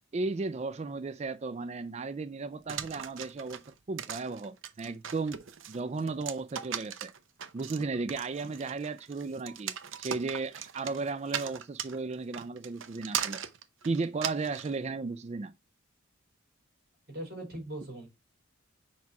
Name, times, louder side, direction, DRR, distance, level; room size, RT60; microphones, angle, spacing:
voice 1, 0.1-5.4 5.7-7.1 7.5-13.4 13.8-15.5, right 3 dB, 30° right, 0.4 m, -35 dB
sound 1, 2.7-14.7, right 9 dB, 65° right, 0.8 m, -38 dB
voice 2, 17.1-18.1, right 1 dB, 45° right, 3.6 m, -40 dB
5.6 x 4.7 x 4.6 m
head